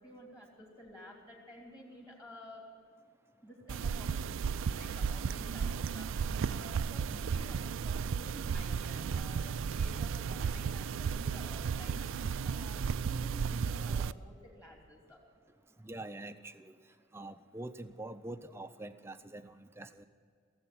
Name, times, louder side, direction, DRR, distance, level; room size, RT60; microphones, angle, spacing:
voice 1, 0.0-2.7 3.4-15.2, left 1 dB, 15° left, -1 dB, 2.9 m, -53 dB
sound 1, 3.7-14.1, right 6 dB, 65° right, 0.4 m, -34 dB
voice 2, 15.8-16.7 17.1-20.0, right 2 dB, 10° right, 8 dB, 0.5 m, -45 dB
17.5 x 7.9 x 10.0 m, 2.1 s
head